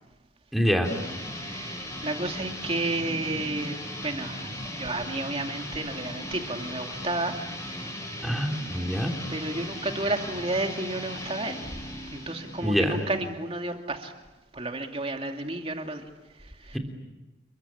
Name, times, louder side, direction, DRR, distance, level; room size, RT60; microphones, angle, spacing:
voice 1, 0.5-0.9 8.2-9.1 12.6-13.0, equal, ahead, 3 dB, 3.0 m, -25 dB
sound 1, 0.8-13.3, left 1 dB, 15° left, 7.8 m, -38 dB
voice 2, 1.3-3.8 4.0-7.4 7.7-8.0 9.3-14.1 14.5-16.1 16.4-16.8, right 2 dB, 30° right, 4 dB, 2.6 m, -32 dB
29.5 x 22.5 x 8.7 m, 1.1 s
head